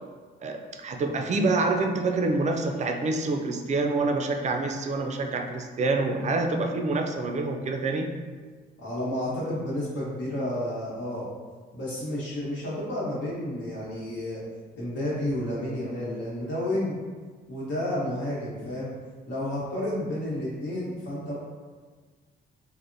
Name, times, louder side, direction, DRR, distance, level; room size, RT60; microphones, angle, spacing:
voice 1, 0.4-8.1, right 3 dB, 35° right, 4 dB, 0.4 m, -27 dB
voice 2, 8.8-11.2 11.7-14.4 14.7-17.0 17.5-18.9 19.3-21.3, left 1 dB, 65° left, -6 dB, 1.1 m, -31 dB
3.3 x 2.1 x 2.6 m, 1.5 s
cardioid pair, 90°, 20 cm